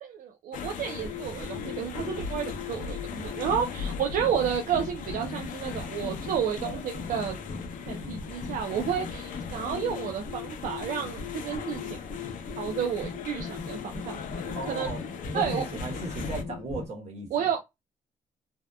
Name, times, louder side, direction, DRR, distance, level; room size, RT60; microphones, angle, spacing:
voice 1, 0.0-7.4 7.9-12.0 12.6-14.9 15.3-15.6 17.3-17.6, right 8 dB, 75° right, 0.4 m, -31 dB
sound 1, 0.5-16.4, left 6 dB, 75° left, 0.5 m, -39 dB
sound 2, 1.0-16.9, left 4 dB, 35° left, 0.6 m, -39 dB
voice 2, 14.5-15.0 15.3-17.3, right 1 dB, 50° right, 1.1 m, -36 dB
2.7 x 2.1 x 2.2 m
cardioid pair, 120°, 14 cm